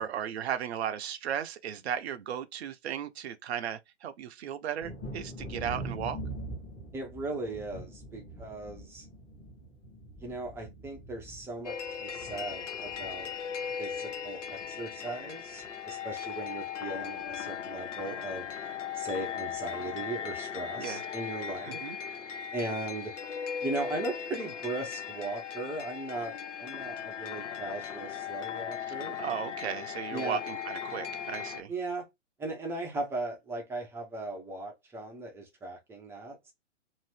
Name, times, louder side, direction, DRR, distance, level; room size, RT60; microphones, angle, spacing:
voice 1, 0.0-6.2 20.8-21.0 21.6-22.0 29.2-31.7, right 9 dB, 60° right, 0.6 m, -35 dB
Thunder, 4.8-14.2 14.5-15.2 15.6-15.7 16.1-16.3, right 1 dB, 15° left, 1.0 m, -44 dB
voice 2, 6.9-9.1 10.2-13.3 13.8-18.5 18.9-21.8 22.5-23.2 23.6-29.2 30.1-30.4 31.7-32.1 32.4-36.5, right 2 dB, 5° right, 0.5 m, -38 dB
sound 1, 11.6-31.6, left 8 dB, 75° left, 0.6 m, -38 dB
2.7 x 2.5 x 3.2 m
figure-of-eight pair, 120°, 37 cm